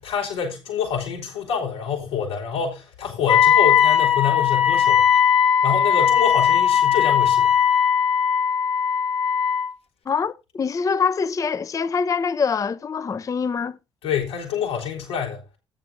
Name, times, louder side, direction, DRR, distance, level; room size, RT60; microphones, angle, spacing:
voice 1, 0.0-5.2 5.6-7.5 14.0-15.4, left 7 dB, 75° left, 3.7 m, -27 dB
Wind instrument woodwind instrument, 3.3-9.7, left 8 dB, 40° left, 0.9 m, -18 dB
voice 2, 10.1-13.8, left 5 dB, 25° left, 0.4 m, -24 dB
14.0 x 9.7 x 2.7 m
figure-of-eight pair, 45°, 15 cm